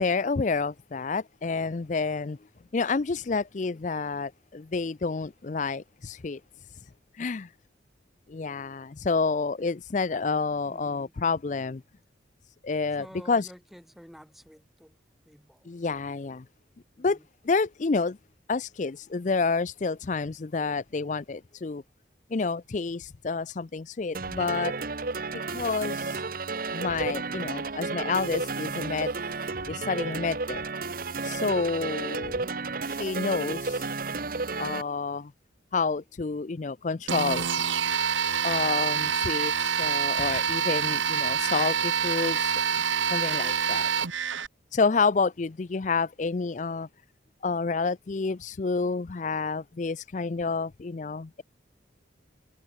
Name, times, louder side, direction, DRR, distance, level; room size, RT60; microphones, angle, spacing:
voice 1, 0.0-2.4 2.7-6.4 7.1-7.5 8.3-11.8 12.6-13.5 15.7-16.4 17.0-17.2 17.4-18.2 18.5-21.8 22.3-24.8 25.3-26.2 26.7-29.2 29.6-30.6 31.2-32.4 32.8-33.9 34.6-35.3 35.7-37.5 38.4-42.5 43.1-43.9 44.7-46.9 47.4-51.4, left 4 dB, 40° left, 0.5 m, -29 dB
voice 2, 10.7-11.1 13.0-14.9 15.3-15.7 17.0-17.2, equal, ahead, 5.7 m, -50 dB
sound 1, 24.1-34.8, right 3 dB, 45° right, 1.1 m, -32 dB
sound 2, 37.1-44.5, right 7 dB, 85° right, 1.3 m, -26 dB
head